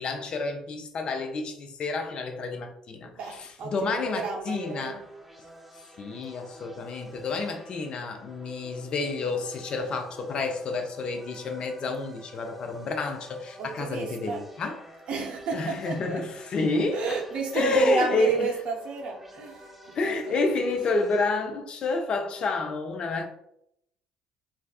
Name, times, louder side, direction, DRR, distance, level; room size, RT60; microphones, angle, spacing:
voice 1, 0.0-3.1 3.4-5.0 6.0-14.8 15.5-17.2 17.5-18.4 19.9-23.2, left 3 dB, 50° left, 0.4 m, -29 dB
voice 2, 3.0-5.0 13.6-14.5 15.1-16.3 16.9-20.8, right 4 dB, 55° right, 0.5 m, -31 dB
sound 1, 4.5-21.3, equal, 5° right, 0.5 m, -50 dB
2.4 x 2.2 x 2.3 m
hypercardioid pair, 55°, 2 cm